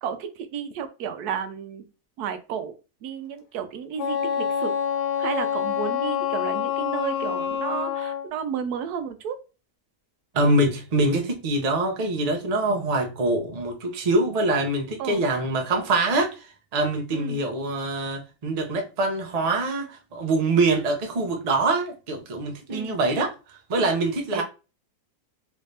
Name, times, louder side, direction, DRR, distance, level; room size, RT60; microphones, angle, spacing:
voice 1, 0.0-1.8 2.2-2.7 3.0-4.7 5.2-9.4 15.0-15.2 17.1-17.4 22.7-23.0 24.3-24.4, right 8 dB, 80° right, 1.1 m, -32 dB
Wind instrument woodwind instrument, 4.0-8.3, left 9 dB, 85° left, 1.2 m, -26 dB
voice 2, 10.3-16.5 16.7-24.4, right 2 dB, 40° right, 0.6 m, -24 dB
3.2 x 2.6 x 3.2 m
omnidirectional pair, 1.6 m